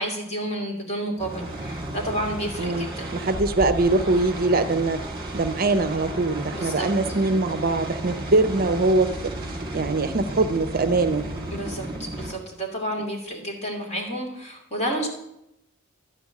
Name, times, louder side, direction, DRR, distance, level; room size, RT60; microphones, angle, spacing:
voice 1, 0.0-3.1 6.5-6.9 11.5-15.1, right 1 dB, 30° left, -1 dB, 2.8 m, -30 dB
sound 1, 1.2-12.3, right 1 dB, 20° right, 2.0 m, -33 dB
voice 2, 2.6-5.0 5.3-9.3 9.7-11.3, right 2 dB, 45° right, 10 dB, 0.6 m, -22 dB
12.0 x 5.1 x 8.3 m, 0.84 s
head